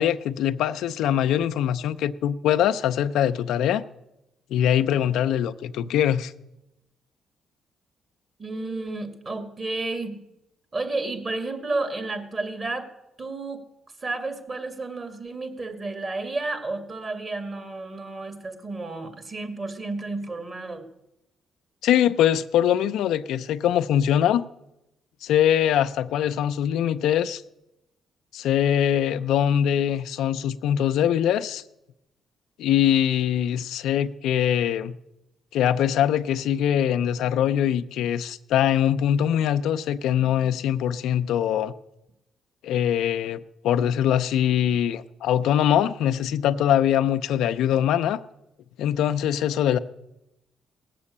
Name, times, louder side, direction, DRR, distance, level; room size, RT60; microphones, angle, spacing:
voice 1, 0.0-3.8 4.5-6.3 21.8-24.4 25.2-27.4 28.3-31.6 32.6-35.0 35.5-41.7 42.6-48.2 48.8-49.8, left 10 dB, 85° left, 0.5 m, -22 dB
voice 2, 8.4-10.2 10.7-12.9 13.2-13.6 14.0-20.8, right 3 dB, 35° right, 2.4 m, -31 dB
18.0 x 7.6 x 8.5 m
cardioid pair, 90°, 0 cm